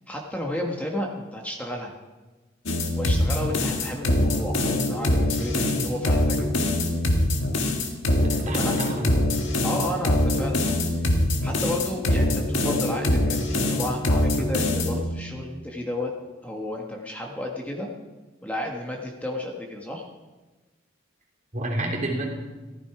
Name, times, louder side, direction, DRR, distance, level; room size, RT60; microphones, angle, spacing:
voice 1, 0.1-1.9 3.0-6.5 8.4-8.7 9.6-16.1 16.4-17.9 18.4-20.0, left 1 dB, 10° left, -1 dB, 1.4 m, -32 dB
sound 1, 2.7-15.0, left 1 dB, 65° left, 2.1 m, -23 dB
voice 2, 8.2-9.2 21.5-22.3, right 1 dB, 40° right, -1 dB, 3.4 m, -29 dB
15.0 x 15.0 x 4.9 m, 1.2 s
head